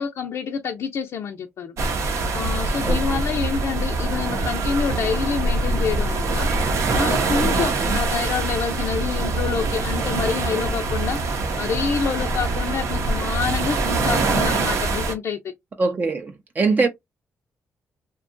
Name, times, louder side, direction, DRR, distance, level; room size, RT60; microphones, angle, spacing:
voice 1, 0.0-1.8 2.3-15.5 16.8-16.9, left 6 dB, 65° left, 0.5 m, -27 dB
sound 1, 1.8-15.1, right 3 dB, 75° right, 0.7 m, -24 dB
voice 2, 2.8-3.2 7.5-8.0 15.8-16.9, right 4 dB, 35° right, 0.4 m, -23 dB
2.7 x 2.2 x 2.5 m
cardioid pair, 90°, 5 cm